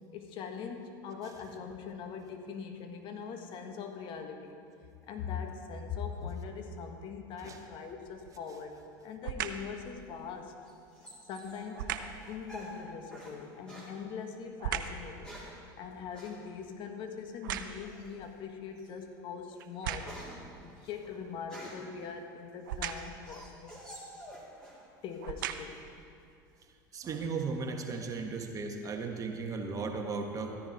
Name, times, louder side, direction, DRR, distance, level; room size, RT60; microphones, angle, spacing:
voice 1, 0.1-4.5 5.1-10.6 11.3-11.9 12.3-15.4 15.8-20.2 20.6-23.8 25.0-25.8, left 6 dB, 50° left, 5 dB, 1.4 m, -42 dB
sound 1, 8.1-8.5 9.2-9.7 11.7-12.2 13.7-15.1 15.6-18.1 18.7-18.8 19.6-20.3 22.6-23.2 24.3-24.4 25.1-25.9 26.5-26.6, right 9 dB, 80° right, 0.6 m, -38 dB
sound 2, 10.1-13.4 13.7-13.9 14.9-15.6 16.1-16.4 17.8-18.2 18.8-18.9 19.3-21.9 22.5-24.8 25.1-25.7, right 1 dB, 10° left, 3.6 m, -49 dB
voice 2, 26.9-30.6, right 4 dB, 30° right, 3 dB, 1.4 m, -36 dB
14.5 x 10.0 x 4.5 m, 2.4 s
hypercardioid pair, 95°, 11 cm